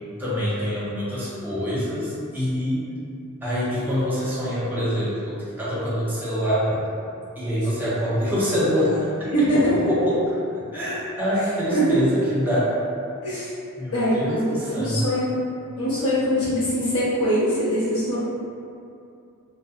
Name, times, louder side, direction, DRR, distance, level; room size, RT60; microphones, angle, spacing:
voice 1, 0.2-2.9 3.4-6.9 7.4-9.3 9.5-10.3 10.7-12.7 13.8-15.0, equal, 10° right, -11 dB, 0.6 m, -25 dB
voice 2, 9.3-9.7 11.7-11.8 13.2-13.5 13.9-15.3 15.8-18.2, equal, 80° left, -12 dB, 0.9 m, -23 dB
2.4 x 2.1 x 2.4 m, 2.5 s
head